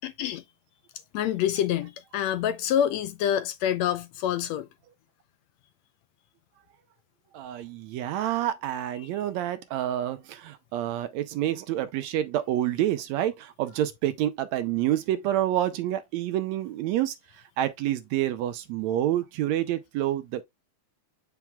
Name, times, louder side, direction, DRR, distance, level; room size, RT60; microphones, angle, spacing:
voice 1, 0.0-0.4 1.1-4.7, left 10 dB, 75° left, 1.7 m, -27 dB
voice 2, 7.3-17.2 17.6-20.4, right 12 dB, 75° right, 1.8 m, -28 dB
8.1 x 5.9 x 2.3 m
omnidirectional pair, 3.6 m